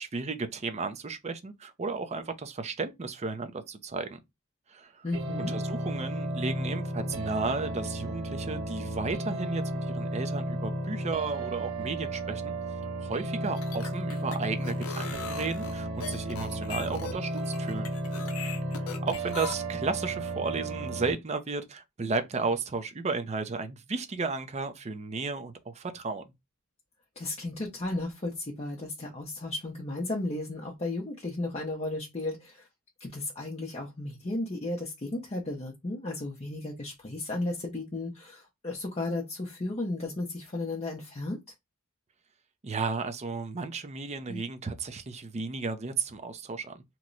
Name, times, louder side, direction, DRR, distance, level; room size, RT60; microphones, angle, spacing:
voice 1, 0.0-4.2 4.7-5.1 5.5-12.5 13.0-17.9 18.8-26.2 42.6-46.8, right 4 dB, 30° right, 0.5 m, -34 dB
voice 2, 5.0-5.5 27.2-32.7 33.0-41.4 44.3-44.4, left 2 dB, 30° left, 0.6 m, -34 dB
sound 1, 5.1-21.1, right 1 dB, 75° right, 1.0 m, -33 dB
sound 2, 13.4-19.5, left 6 dB, 85° left, 0.5 m, -40 dB
2.9 x 2.1 x 3.8 m
head